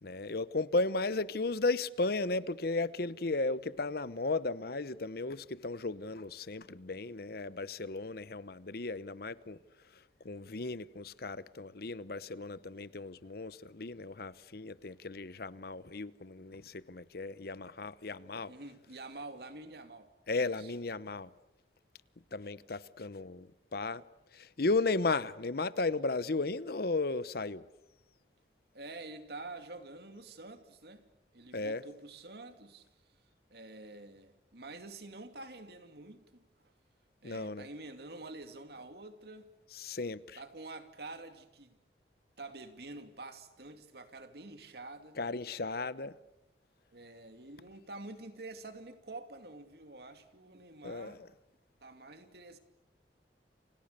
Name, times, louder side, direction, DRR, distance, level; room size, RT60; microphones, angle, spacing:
voice 1, 0.0-9.6 10.2-18.5 20.3-21.3 22.3-24.0 24.3-27.6 31.5-31.8 37.2-37.7 39.8-40.4 45.2-46.2 50.8-51.1, left 3 dB, 60° left, 0.9 m, -35 dB
voice 2, 18.5-20.1 20.4-20.7 28.7-31.1 31.3-32.9 33.5-36.4 37.2-39.5 40.3-41.8 42.4-45.2 46.9-51.3 51.8-52.6, right 2 dB, 65° right, 2.6 m, -48 dB
30.0 x 27.5 x 6.8 m
head